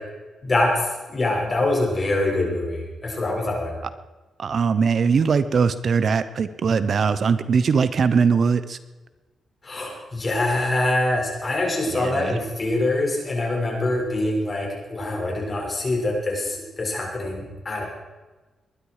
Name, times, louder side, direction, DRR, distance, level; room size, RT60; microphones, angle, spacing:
voice 1, 0.4-3.8 9.6-17.8, left 2 dB, 35° left, -1 dB, 6.2 m, -24 dB
voice 2, 4.4-8.8 11.9-12.4, right 5 dB, 55° right, 13 dB, 0.8 m, -21 dB
21.0 x 12.0 x 4.9 m, 1.2 s
cardioid pair, 95°, 0 cm